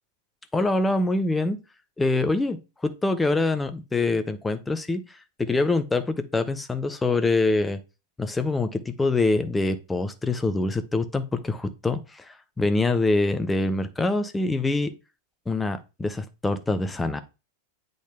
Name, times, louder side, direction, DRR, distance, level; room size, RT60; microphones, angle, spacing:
voice 1, 0.5-1.6 2.0-7.8 8.2-14.9 15.5-17.2, left 2 dB, 10° left, 10 dB, 0.7 m, -25 dB
8.2 x 4.0 x 3.4 m, 0.29 s
figure-of-eight pair, 90°, 0 cm